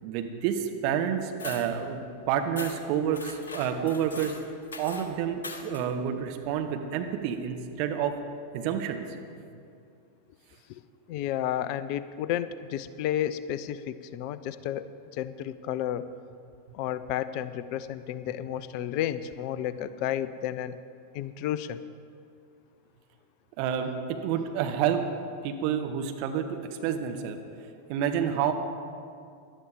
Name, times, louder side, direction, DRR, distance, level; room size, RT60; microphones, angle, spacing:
voice 1, 0.0-4.3 4.8-8.1 8.5-9.0 23.6-25.0 25.4-26.5 26.8-28.5, right 8 dB, 45° right, 5 dB, 1.3 m, -29 dB
sound 1, 1.4-1.7 2.6-2.8 3.1-5.1 5.4-5.9, left 3 dB, 70° left, 1.4 m, -41 dB
voice 2, 11.1-14.9 15.2-16.1 16.7-20.8 21.1-21.8, left 11 dB, 45° left, 15 dB, 0.5 m, -32 dB
18.0 x 12.0 x 5.2 m, 2.4 s
figure-of-eight pair, 90°, 0 cm